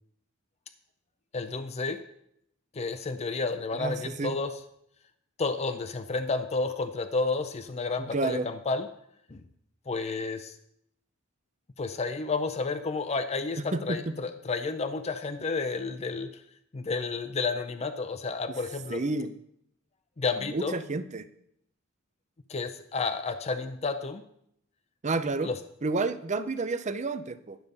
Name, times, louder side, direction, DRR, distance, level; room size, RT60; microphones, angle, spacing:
voice 1, 1.3-2.0 2.7-4.5 5.4-8.9 9.3-9.4 9.9-10.6 11.8-16.4 16.7-19.0 20.2-20.7 22.5-24.2 25.4-25.6, left 4 dB, 30° left, 9 dB, 0.5 m, -31 dB
voice 2, 3.7-4.4 8.0-8.5 13.6-14.1 18.9-19.3 20.4-21.3 25.0-25.5 25.8-27.6, right 3 dB, 35° right, 12 dB, 0.6 m, -30 dB
11.5 x 6.7 x 5.3 m, 0.73 s
head